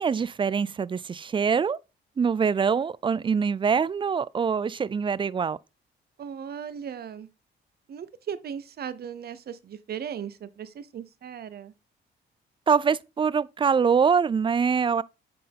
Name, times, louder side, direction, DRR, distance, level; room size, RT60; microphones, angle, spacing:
voice 1, 0.0-1.8 2.2-5.6 12.7-15.0, right 6 dB, 25° right, 0.4 m, -24 dB
voice 2, 6.2-7.3 7.9-11.7, right 8 dB, 55° right, 0.8 m, -37 dB
9.2 x 4.6 x 3.5 m
cardioid pair, 90°, 20 cm